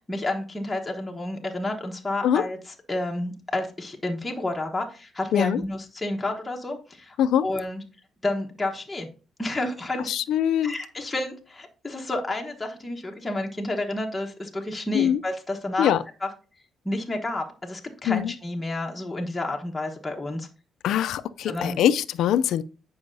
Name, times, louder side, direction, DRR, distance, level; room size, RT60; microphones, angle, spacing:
voice 1, 0.1-7.2 7.4-7.8 8.2-9.1 9.4-10.1 10.6-15.9 16.2-16.3 16.8-20.5 21.4-21.8, left 2 dB, 15° left, 1.1 m, -30 dB
voice 2, 10.1-10.7 14.9-15.2 15.8-16.0 18.1-18.3 20.8-22.6, left 10 dB, 80° left, 0.4 m, -22 dB
9.4 x 5.4 x 2.6 m
cardioid pair, 90°, 0 cm